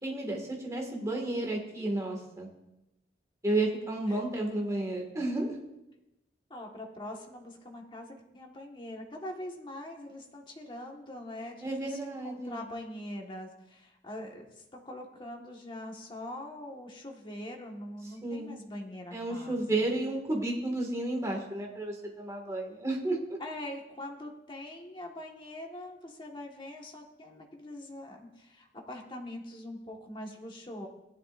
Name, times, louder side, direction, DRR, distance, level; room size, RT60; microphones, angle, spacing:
voice 1, 0.0-2.5 3.4-5.6 11.6-12.7 18.2-18.5 19.1-23.2, right 2 dB, 15° right, 0 dB, 1.9 m, -32 dB
voice 2, 6.5-14.5 14.7-19.9 23.4-30.9, left 1 dB, 25° left, 1 dB, 1.5 m, -43 dB
17.0 x 11.0 x 2.6 m, 0.92 s
head